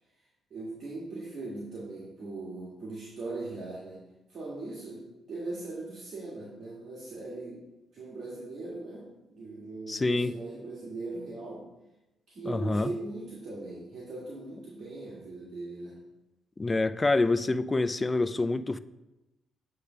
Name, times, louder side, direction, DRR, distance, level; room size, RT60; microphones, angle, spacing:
voice 1, 0.5-4.0 4.3-7.6 7.9-11.6 12.3-15.9, right 2 dB, 55° right, 1.7 m, -39 dB
voice 2, 9.9-10.3 12.5-12.9 16.6-18.8, left 2 dB, 25° left, 0.3 m, -26 dB
8.4 x 3.4 x 5.5 m
cardioid pair, 90°, 0 cm